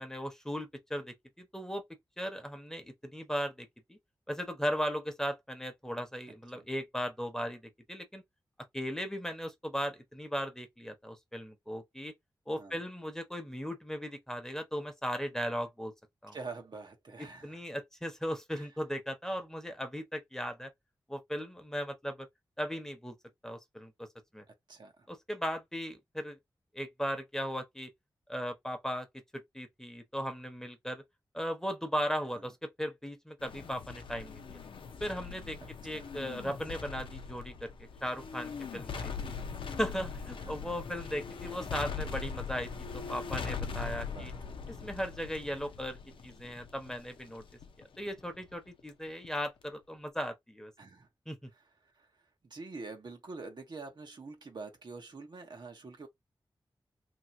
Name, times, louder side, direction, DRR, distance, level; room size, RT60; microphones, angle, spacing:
voice 1, 0.0-1.8 2.2-4.0 4.3-8.2 8.7-12.1 12.5-15.9 16.2-16.4 17.4-20.7 21.1-22.3 22.6-23.1 23.4-23.9 24.3-24.4 25.1-26.4 26.7-27.9 28.3-29.1 29.3-31.0 31.3-34.6 35.0-35.6 35.8-37.7 38.0-39.1 39.8-44.3 44.7-46.0 46.2-47.4 47.8-50.7 51.3-51.5, equal, 5° left, 1.1 m, -37 dB
voice 2, 6.3-6.7 12.5-12.8 16.3-17.6 18.5-18.7 19.2-19.4 24.5-25.1 32.3-32.5 35.9-36.1 40.4-40.7 44.0-44.3 50.8-51.1 51.5-56.1, right 3 dB, 60° right, 1.2 m, -47 dB
sound 1, 33.4-48.9 49.2-49.3, left 5 dB, 85° left, 0.6 m, -41 dB
3.0 x 2.8 x 2.6 m
cardioid pair, 55°, 8 cm